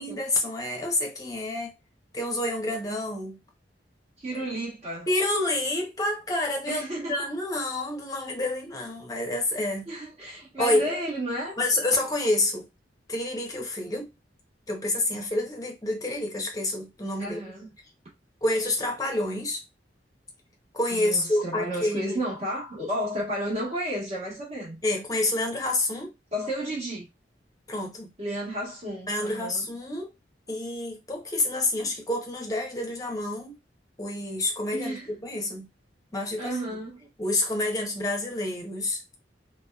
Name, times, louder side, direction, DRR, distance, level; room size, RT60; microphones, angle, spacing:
voice 1, 0.0-1.7 2.1-3.4 5.1-6.8 7.1-9.9 10.6-10.9 11.6-12.7 13.1-14.1 14.7-17.5 18.4-19.6 20.7-22.2 24.8-26.1 27.7-28.1 29.1-30.1 30.5-33.5 34.0-35.7 36.1-36.6 37.2-39.0, left 1 dB, 20° left, 0.6 m, -28 dB
voice 2, 4.2-5.1 6.7-7.3 9.9-11.6 17.2-17.7 20.9-24.8 26.3-27.1 28.2-29.6 34.7-35.1 36.4-37.1, equal, 35° right, 1.1 m, -32 dB
2.7 x 2.1 x 2.2 m
head